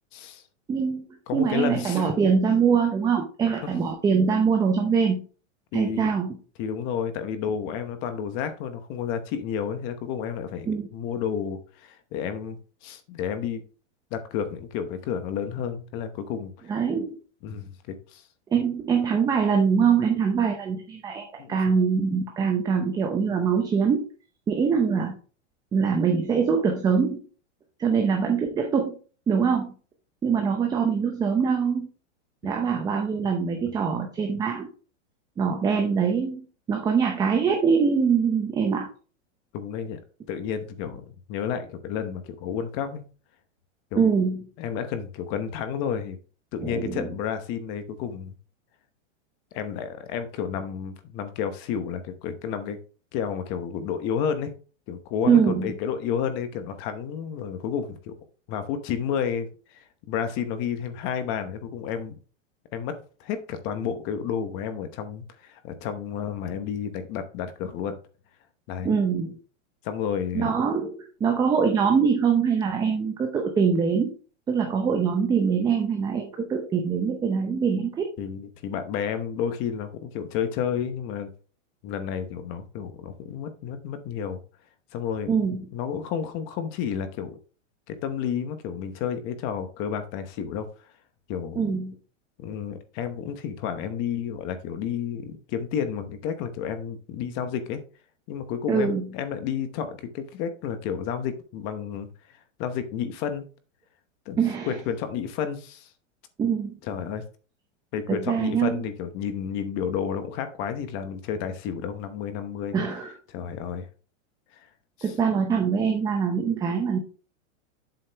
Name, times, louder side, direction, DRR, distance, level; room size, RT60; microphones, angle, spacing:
voice 1, 0.1-0.4 1.3-2.1 3.6-3.7 5.7-6.1 6.6-13.6 14.1-16.8 17.4-18.2 21.4-21.6 32.4-32.5 33.6-33.7 39.5-40.0 40.3-43.0 43.9-44.0 44.6-46.2 46.5-48.3 49.5-52.8 53.1-54.5 54.9-58.2 58.5-62.2 62.7-68.0 68.7-69.0 69.8-70.5 78.2-81.3 81.8-84.4 84.9-85.3 85.7-87.3 87.9-90.7 91.3-91.9 92.4-97.8 98.3-103.5 104.3-104.4 104.7-105.9 106.8-107.2 107.9-112.7 113.3-113.9 114.5-114.7 115.0-115.1, left 8 dB, 30° left, 10 dB, 0.9 m, -31 dB
voice 2, 0.7-1.0 1.3-5.2 5.7-6.4 10.7-10.9 16.7-17.2 18.5-24.0 24.5-25.1 25.7-27.2 27.8-29.0 29.3-29.7 30.2-31.9 32.4-34.7 35.4-38.9 44.0-44.4 46.6-47.1 55.3-55.7 68.8-69.3 70.3-74.1 74.5-78.1 85.3-85.6 91.6-91.9 98.7-99.0 104.4-104.7 106.4-106.8 108.1-108.8 112.7-113.1 115.0-117.0, right 6 dB, 10° right, 3 dB, 0.6 m, -23 dB
7.7 x 6.4 x 3.4 m, 0.38 s
supercardioid pair, 160°, 38 cm